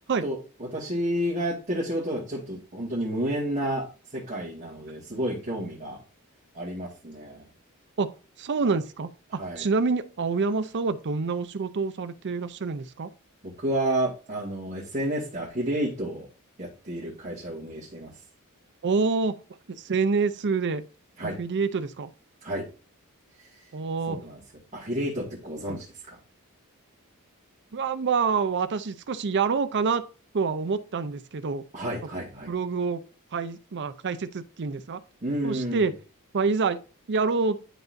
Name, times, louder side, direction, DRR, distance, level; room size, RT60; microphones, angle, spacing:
voice 1, 0.2-6.0 6.5-7.5 9.3-9.7 13.4-16.3 16.6-18.1 21.2-21.4 22.4-22.7 23.4-23.6 24.1-24.4 24.7-26.2 31.7-32.5 35.2-35.9, right 1 dB, 35° right, 1.9 m, -31 dB
voice 2, 8.4-9.1 9.6-13.1 18.8-19.4 19.7-20.8 21.2-22.1 23.7-24.2 25.7-25.8 27.7-30.0 30.3-31.6 32.5-33.0 33.3-35.0 35.4-35.9 36.3-36.8 37.1-37.6, right 4 dB, 55° right, 0.6 m, -27 dB
11.0 x 4.0 x 2.6 m
head